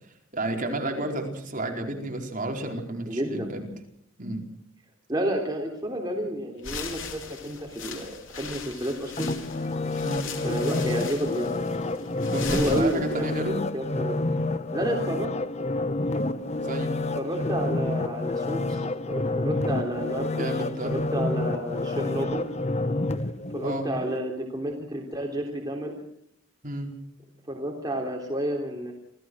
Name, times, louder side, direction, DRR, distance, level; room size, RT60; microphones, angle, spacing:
voice 1, 0.3-3.7 4.2-4.4 10.0-10.3 12.3-13.6 14.8-15.0 16.6-16.9 20.3-20.9 23.6-23.9 26.6-26.9, right 1 dB, 40° right, 2 dB, 4.5 m, -31 dB
voice 2, 3.1-3.5 5.1-9.3 10.4-13.3 13.7-14.2 14.7-15.3 15.6-15.7 17.1-20.4 20.8-22.4 23.5-26.0 27.5-28.9, right 1 dB, 20° right, 0 dB, 3.4 m, -31 dB
sound 1, 6.6-13.5, left 5 dB, 65° left, 4.3 m, -39 dB
sound 2, 9.2-24.2 24.6-24.8, left 2 dB, 30° left, 1.0 m, -29 dB
27.5 x 17.0 x 6.4 m, 0.70 s
head